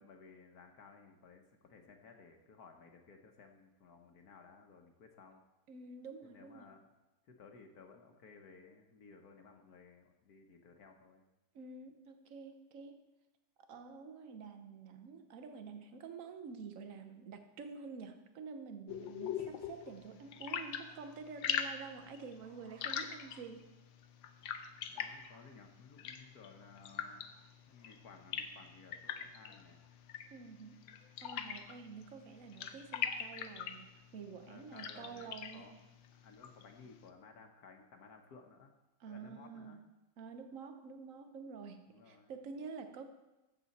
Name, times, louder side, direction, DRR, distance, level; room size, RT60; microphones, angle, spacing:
voice 1, 0.0-5.4 6.2-6.8 7.2-11.2 24.9-27.3 27.7-29.8 34.5-35.7 36.2-38.7 39.1-39.8 41.9-42.3, left 5 dB, 60° left, 4 dB, 1.3 m, -58 dB
voice 2, 5.7-6.7 11.5-13.0 13.6-23.7 30.3-30.8 31.2-35.7 39.0-39.8 40.2-43.0, right 5 dB, 55° right, 8 dB, 1.1 m, -49 dB
sound 1, 18.9-37.1, left 8 dB, 85° left, 1.5 m, -44 dB
sound 2, 20.1-21.5 21.9-23.6 25.0-25.4 26.1-28.0 28.6-29.0, right 1 dB, 85° right, 3.1 m, -69 dB
14.0 x 7.4 x 4.1 m, 1.0 s
omnidirectional pair, 2.0 m